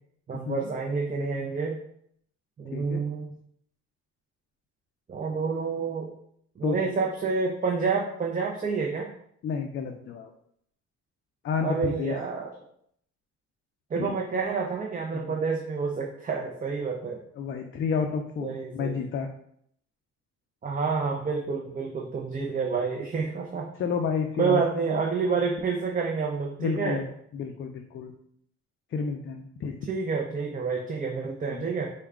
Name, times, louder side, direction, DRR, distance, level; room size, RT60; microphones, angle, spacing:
voice 1, 0.3-1.8 2.6-3.3 5.1-6.1 6.6-9.1 11.6-12.5 13.9-17.2 18.4-19.0 20.6-23.7 24.4-27.0 29.9-31.9, right 5 dB, 30° right, 0 dB, 0.5 m, -28 dB
voice 2, 2.7-3.0 6.6-7.0 9.4-10.3 11.4-12.1 14.0-14.1 15.1-15.3 17.4-19.3 23.8-24.6 24.9-25.0 26.6-27.1 27.3-28.1 28.9-29.9 31.5-31.6, left 6 dB, 40° left, 4 dB, 0.4 m, -30 dB
4.6 x 2.2 x 3.5 m, 0.69 s
cardioid pair, 90°, 30 cm